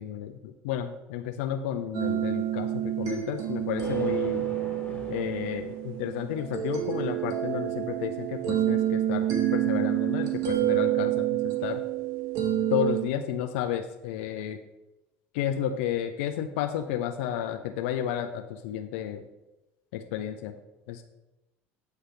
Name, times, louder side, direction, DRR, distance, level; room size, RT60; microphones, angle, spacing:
voice 1, 0.0-4.5 5.1-9.3 9.5-11.8 12.7-14.6 15.3-19.2 19.9-20.6 20.9-21.0, left 10 dB, 75° left, 5 dB, 0.5 m, -32 dB
sound 1, 1.9-13.0, right 12 dB, 60° right, 1.4 m, -28 dB
Thunder, 3.8-6.3, left 2 dB, 15° left, 1.8 m, -42 dB
9.2 x 3.4 x 5.6 m, 1.0 s
hypercardioid pair, 85°, 6 cm